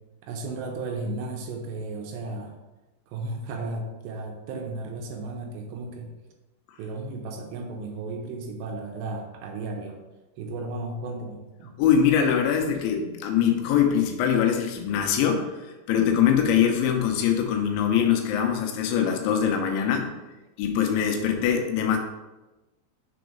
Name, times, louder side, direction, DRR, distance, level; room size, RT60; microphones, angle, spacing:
voice 1, 0.2-2.6 3.1-6.1 6.8-10.0 10.4-11.7, right 3 dB, 80° right, 2 dB, 2.8 m, -34 dB
voice 2, 11.8-15.5 15.9-20.1 20.6-22.0, left 8 dB, 85° left, 3 dB, 3.0 m, -23 dB
7.1 x 3.9 x 5.0 m, 1.1 s
omnidirectional pair, 5.3 m